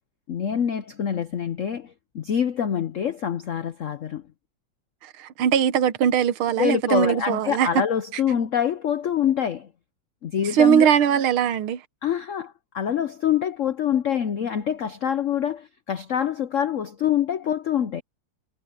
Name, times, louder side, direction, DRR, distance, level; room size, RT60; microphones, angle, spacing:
voice 1, 0.3-4.2 6.6-9.7 10.2-10.9 12.0-18.0, left 9 dB, 80° left, 0.7 m, -25 dB
voice 2, 5.0-7.7 10.5-11.8, right 9 dB, 80° right, 1.9 m, -20 dB
omnidirectional pair, 2.3 m